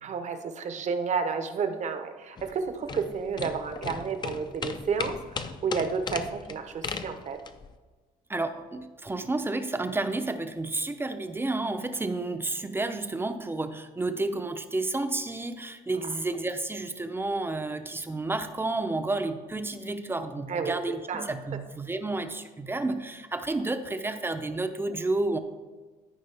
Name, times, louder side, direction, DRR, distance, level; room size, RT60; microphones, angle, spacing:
voice 1, 0.0-7.4 20.5-20.8 21.1-21.3, right 5 dB, 45° right, 8 dB, 0.9 m, -31 dB
sound 1, 2.4-7.7, left 5 dB, 25° left, 0.5 m, -36 dB
voice 2, 8.3-25.4, right 2 dB, 15° right, 8 dB, 0.6 m, -31 dB
13.5 x 5.0 x 3.4 m, 1.3 s
cardioid pair, 110°, 17 cm